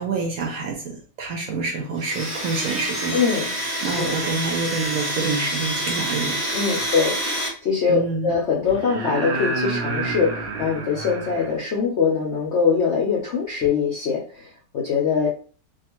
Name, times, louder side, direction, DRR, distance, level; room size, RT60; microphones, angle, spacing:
voice 1, 0.0-3.2 3.8-6.4 7.9-8.3, right 4 dB, 65° right, 1 dB, 1.0 m, -27 dB
Domestic sounds home sounds, 2.0-7.5, right 1 dB, 35° right, 0.7 m, -27 dB
voice 2, 3.1-3.5 3.8-4.1 6.5-15.3, left 5 dB, 70° left, -2 dB, 0.6 m, -23 dB
sound 1, 6.8-6.9 8.6-11.5 13.6-13.7, right 3 dB, 85° right, 0.5 m, -29 dB
2.8 x 2.3 x 2.9 m, 0.40 s
omnidirectional pair, 1.9 m